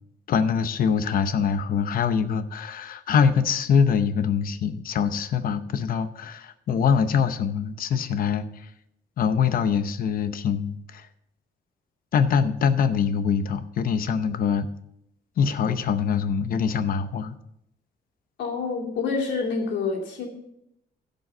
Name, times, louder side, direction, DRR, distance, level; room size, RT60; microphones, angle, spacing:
voice 1, 0.3-8.7 9.2-11.1 12.1-14.7 15.4-17.4, left 6 dB, 55° left, 11 dB, 0.8 m, -24 dB
voice 2, 18.4-20.3, left 4 dB, 85° left, -1 dB, 2.7 m, -27 dB
15.0 x 5.4 x 5.5 m, 0.78 s
cardioid pair, 175°, 18 cm